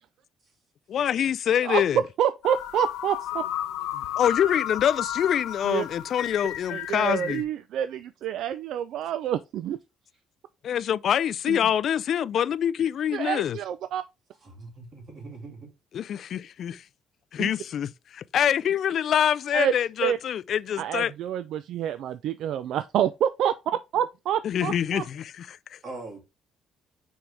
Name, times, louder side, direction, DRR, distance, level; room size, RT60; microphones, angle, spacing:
voice 1, 0.9-2.0 3.9-7.4 10.6-13.6 15.9-16.8 17.3-21.1 24.4-25.8, left 9 dB, 50° left, 0.3 m, -25 dB
voice 2, 2.2-3.4 5.7-5.8 6.7-9.8 11.5-11.6 13.1-14.0 17.4-17.5 19.5-19.7 20.0-20.2 20.8-25.0, right 10 dB, 65° right, 0.4 m, -27 dB
sound 1, 2.4-7.4, left 11 dB, 90° left, 0.7 m, -33 dB
voice 3, 14.4-15.7 25.8-26.2, right 3 dB, 35° right, 2.8 m, -41 dB
6.2 x 4.7 x 3.4 m
cardioid pair, 160°, 0 cm